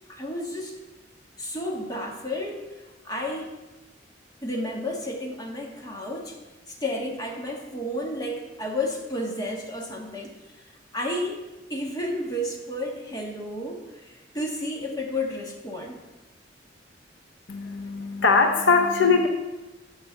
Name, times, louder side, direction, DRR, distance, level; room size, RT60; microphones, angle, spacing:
voice 1, 0.1-0.8 1.4-2.6 3.0-3.5 4.4-6.4 6.7-10.3 10.9-11.4 11.7-16.0, left 1 dB, 20° left, -1 dB, 1.5 m, -31 dB
voice 2, 17.5-19.3, left 4 dB, 70° left, 5 dB, 0.7 m, -21 dB
8.8 x 5.5 x 6.7 m, 1.1 s
head